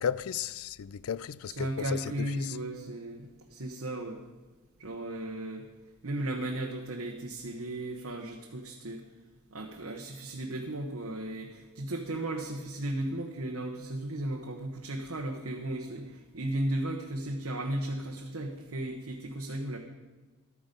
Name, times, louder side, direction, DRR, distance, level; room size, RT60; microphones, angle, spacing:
voice 1, 0.0-2.6, left 8 dB, 70° left, 0.4 m, -34 dB
voice 2, 1.5-4.2 4.8-5.7 6.0-9.0 9.5-19.8, right 1 dB, 70° right, 1.1 m, -35 dB
12.5 x 9.5 x 5.3 m
head